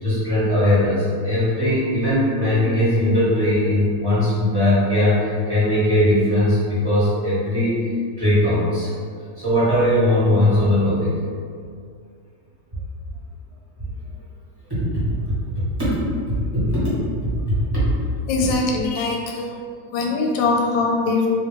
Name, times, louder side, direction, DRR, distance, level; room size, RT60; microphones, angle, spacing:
voice 1, 0.0-8.9 9.4-11.2 14.7-15.1 15.6-16.0 16.3-16.9 17.2-17.9, left 1 dB, 15° right, -12 dB, 1.3 m, -19 dB
voice 2, 18.3-19.5 19.9-21.3, left 3 dB, 85° left, 0 dB, 1.3 m, -21 dB
3.1 x 2.9 x 3.3 m, 2.1 s
omnidirectional pair, 2.0 m